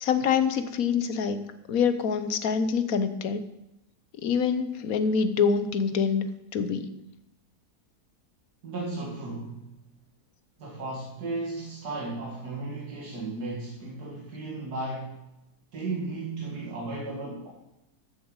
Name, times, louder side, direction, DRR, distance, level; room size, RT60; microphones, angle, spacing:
voice 1, 0.0-3.4 4.2-6.3 6.5-6.9, left 6 dB, 65° left, 11 dB, 1.3 m, -25 dB
voice 2, 8.6-9.6 10.6-15.2 15.7-17.5, right 3 dB, 85° right, -4 dB, 2.5 m, -35 dB
13.5 x 7.4 x 4.9 m, 0.89 s
omnidirectional pair, 1.6 m